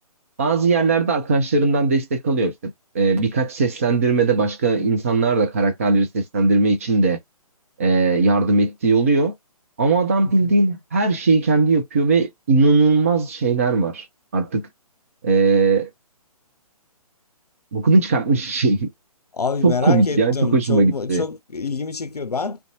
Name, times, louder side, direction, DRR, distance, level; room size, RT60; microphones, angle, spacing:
voice 1, 0.4-2.5 2.9-7.2 7.8-9.3 9.8-14.1 14.3-14.7 15.2-15.9 17.7-18.9 19.6-21.3, right 3 dB, 25° right, 0.4 m, -19 dB
voice 2, 10.2-10.5 19.3-22.6, left 5 dB, 85° left, 0.5 m, -26 dB
2.6 x 2.2 x 2.7 m
figure-of-eight pair, 135°, 19 cm